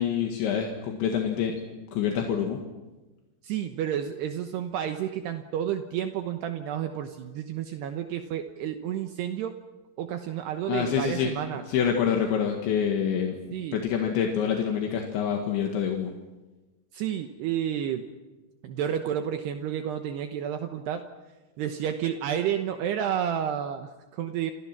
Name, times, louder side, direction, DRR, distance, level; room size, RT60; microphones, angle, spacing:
voice 1, 0.0-1.6 1.9-2.6 10.7-11.3 11.7-16.1, left 8 dB, 75° left, 2 dB, 4.1 m, -26 dB
voice 2, 3.4-9.6 10.0-11.6 13.5-13.8 16.9-18.0 18.6-21.1 21.6-24.5, right 9 dB, 70° right, 6 dB, 2.9 m, -30 dB
29.0 x 27.5 x 6.0 m, 1.2 s
omnidirectional pair, 5.4 m